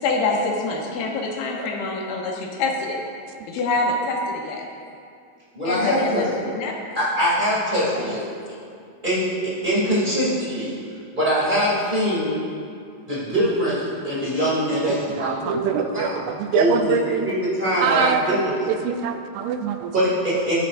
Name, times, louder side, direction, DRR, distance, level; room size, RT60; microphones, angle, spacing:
voice 1, 0.0-3.0 3.5-4.6 5.6-6.3 6.5-6.7 7.9-8.2, left 3 dB, 80° left, 0 dB, 2.9 m, -25 dB
voice 2, 5.5-6.2 7.0-8.2 9.0-10.7 11.1-12.4 13.1-16.2 16.5-18.7 19.9-20.5, equal, 15° right, -8 dB, 2.0 m, -23 dB
voice 3, 15.2-17.3 17.8-18.4 18.9-19.9, right 7 dB, 85° right, 6 dB, 2.4 m, -24 dB
13.5 x 10.0 x 2.6 m, 2.4 s
omnidirectional pair, 4.4 m